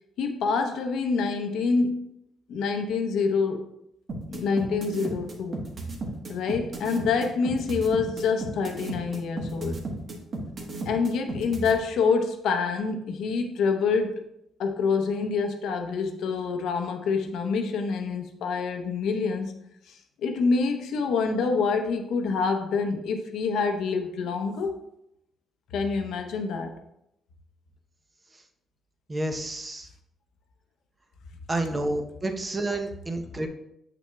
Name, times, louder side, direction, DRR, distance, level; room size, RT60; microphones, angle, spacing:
voice 1, 0.2-2.1 2.5-3.7 4.3-5.6 6.3-9.8 10.9-14.3 14.6-19.5 19.9-24.7 25.7-26.8, left 4 dB, 80° left, 5 dB, 0.7 m, -26 dB
sound 1, 4.1-11.7, right 2 dB, 45° right, 1.2 m, -33 dB
voice 2, 29.1-29.9 31.5-33.5, right 2 dB, 25° right, 5 dB, 0.8 m, -29 dB
6.9 x 5.9 x 2.3 m, 0.80 s
cardioid pair, 90°, 0 cm